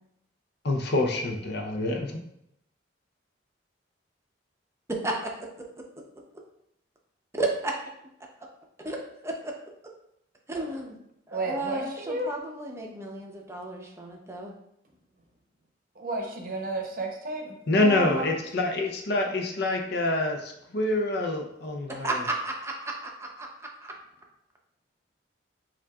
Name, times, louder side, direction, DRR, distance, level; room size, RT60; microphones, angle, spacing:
voice 1, 0.6-2.1 17.7-22.1, left 2 dB, 60° left, 2 dB, 0.6 m, -26 dB
voice 2, 4.9-5.7 7.3-7.7 8.8-9.0 9.2-9.5 10.5-11.0 11.3-14.5 17.8-18.3 22.0-23.9, right 2 dB, 15° right, 0 dB, 0.6 m, -33 dB
voice 3, 11.3-12.3 16.0-17.5, right 2 dB, 50° right, 2 dB, 0.7 m, -32 dB
7.3 x 2.5 x 2.3 m, 0.78 s
head